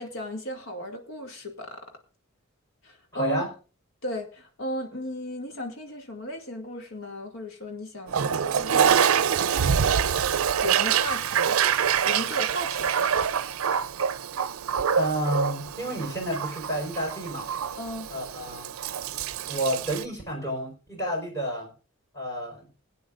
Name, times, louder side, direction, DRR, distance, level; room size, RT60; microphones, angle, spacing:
voice 1, 0.0-1.9 2.8-3.4 4.0-8.7 10.6-11.6 12.1-13.2 17.8-18.1, equal, 65° left, 2.3 m, -35 dB
voice 2, 3.1-3.5 15.0-17.5 18.1-18.7 19.5-21.7 22.1-22.7, equal, 15° left, 4.5 m, -30 dB
Toilet flush, 8.1-20.0, right 7 dB, 80° right, 0.5 m, -25 dB
20.5 x 9.1 x 2.5 m
head